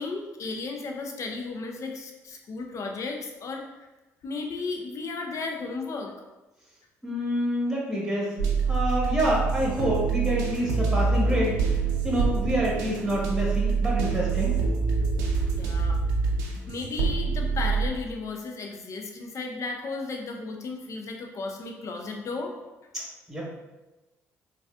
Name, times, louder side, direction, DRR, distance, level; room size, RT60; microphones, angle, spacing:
voice 1, 0.0-3.7 4.2-6.1 15.5-16.0 16.7-22.5, left 3 dB, 50° left, 2 dB, 0.6 m, -34 dB
voice 2, 7.0-8.3 8.7-11.6 12.0-14.6 23.3-23.4, equal, 5° right, -4 dB, 1.4 m, -27 dB
sound 1, 8.4-17.9, right 4 dB, 90° right, 0.5 m, -26 dB
4.0 x 2.3 x 2.4 m, 1.1 s
supercardioid pair, 65°, 7 cm